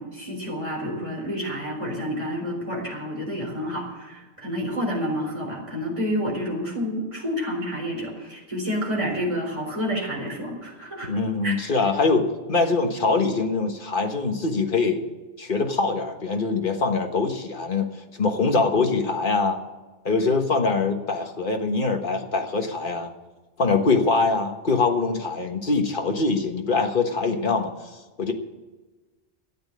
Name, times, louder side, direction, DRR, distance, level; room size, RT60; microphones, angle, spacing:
voice 1, 0.0-11.1 11.4-11.6, equal, 25° right, -2 dB, 4.1 m, -29 dB
voice 2, 11.1-15.0 15.4-19.6 20.0-23.1 23.6-27.7 28.2-28.3, left 3 dB, 50° left, 5 dB, 1.5 m, -23 dB
12.5 x 8.8 x 8.5 m, 1.2 s
omnidirectional pair, 1.2 m